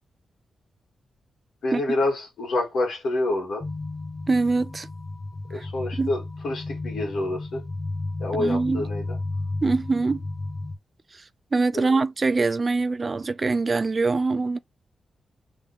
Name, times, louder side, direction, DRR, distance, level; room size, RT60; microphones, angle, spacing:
voice 1, 1.6-3.6 5.5-7.6 8.2-9.0 11.7-11.9, left 2 dB, 75° left, 2.1 m, -27 dB
sound 1, 3.6-10.8, left 2 dB, 45° left, 0.7 m, -33 dB
voice 2, 4.3-4.9 5.5-5.7 6.0-6.1 8.3-8.8 9.6-10.2 11.1-11.2 11.5-14.6, right 3 dB, 35° right, 0.3 m, -23 dB
3.6 x 3.5 x 3.5 m
cardioid pair, 95°, 0 cm